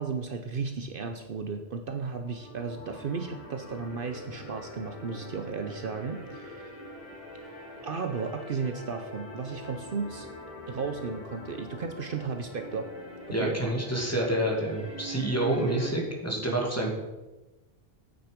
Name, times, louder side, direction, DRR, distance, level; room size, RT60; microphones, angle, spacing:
voice 1, 0.0-6.8 7.8-10.3 10.7-12.9 13.3-13.6, right 5 dB, 60° right, 6 dB, 0.9 m, -34 dB
sound 1, 2.2-15.9, right 1 dB, 60° left, 3.2 m, -43 dB
voice 2, 13.3-16.9, right 1 dB, 15° left, -1 dB, 2.1 m, -28 dB
9.2 x 8.8 x 5.1 m, 1.1 s
omnidirectional pair, 1.1 m